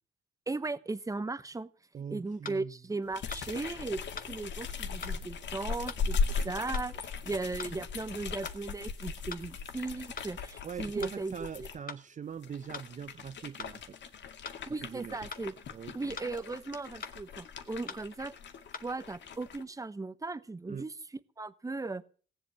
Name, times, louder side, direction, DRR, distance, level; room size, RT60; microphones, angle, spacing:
voice 1, 0.5-1.7 2.1-4.0 4.3-6.2 6.4-11.7 14.7-15.5 15.9-18.3 18.8-20.9 21.4-22.0, right 3 dB, 15° right, 1.1 m, -37 dB
voice 2, 1.9-2.7 10.6-14.0 14.8-15.2 15.7-16.2 20.7-20.9, right 7 dB, 40° right, 0.7 m, -42 dB
sound 1, 2.4-2.6 3.3-3.5 4.2-4.3 5.0-5.2 5.9-6.0 6.7-6.9 7.6-7.8 8.4-8.6 9.3-9.5 10.2-10.3 11.0-11.2 11.9-12.0 12.7-12.9 13.6-13.8 14.4-14.6 15.3-15.5 16.2-16.3 17.0-17.2 17.9-18.0 18.7-18.8, left 5 dB, 45° left, 1.9 m, -42 dB
sound 2, 3.1-11.8 12.3-19.6, left 5 dB, 65° left, 2.2 m, -38 dB
18.5 x 8.0 x 8.9 m
cardioid pair, 90°, 20 cm